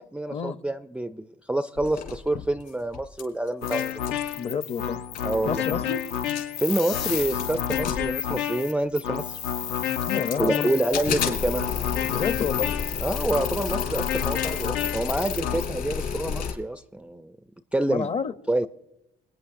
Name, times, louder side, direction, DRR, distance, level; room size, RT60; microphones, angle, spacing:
voice 1, 0.0-4.0 5.2-5.6 6.6-9.3 10.4-11.7 13.0-17.4 17.7-18.1 18.5-18.7, right 1 dB, 5° right, 10 dB, 0.3 m, -27 dB
Projectionist and his Analog Movie Projector, 1.8-3.2 3.5-4.2 4.9-5.0 5.2-5.7 6.1-6.7 7.1-8.9 9.4-10.5 10.9-16.5, left 7 dB, 65° left, 3.6 m, -32 dB
sound 1, 3.6-15.7, left 9 dB, 90° left, 0.7 m, -30 dB
voice 2, 4.3-5.0 5.4-6.0 10.1-10.7 12.1-12.7 17.9-18.3, left 6 dB, 40° left, 12 dB, 0.6 m, -29 dB
27.0 x 9.3 x 2.5 m, 0.85 s
cardioid pair, 110°, 17 cm